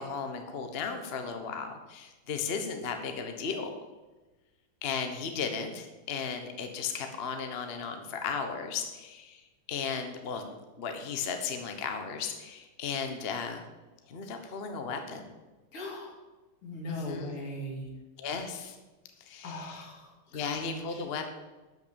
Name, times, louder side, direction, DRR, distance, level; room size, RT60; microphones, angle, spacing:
voice 1, 0.0-3.7 4.8-13.6 14.1-15.3 16.9-17.3 18.2-18.8 19.3-19.8 20.3-21.3, left 5 dB, 40° left, 5 dB, 1.0 m, -35 dB
voice 2, 15.7-16.2 16.6-17.9 19.4-20.6 20.9-21.0, left 1 dB, 80° left, -1 dB, 3.3 m, -39 dB
12.0 x 5.9 x 6.9 m, 1.1 s
omnidirectional pair, 2.4 m